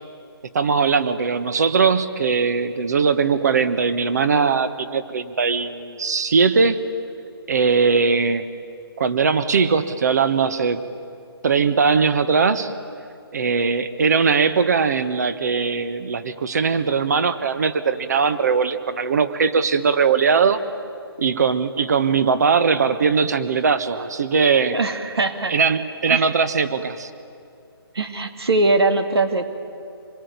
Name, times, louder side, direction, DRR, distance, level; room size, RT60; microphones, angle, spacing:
voice 1, 0.5-6.8 7.5-8.5 9.0-10.8 11.4-12.7 13.3-20.6 21.2-24.8 25.5-27.1, right 5 dB, 45° right, 12 dB, 1.3 m, -20 dB
voice 2, 24.7-25.5 26.1-26.3 27.9-29.5, right 2 dB, 80° right, 7 dB, 2.2 m, -21 dB
26.5 x 21.5 x 9.5 m, 2.5 s
hypercardioid pair, 170°, 13 cm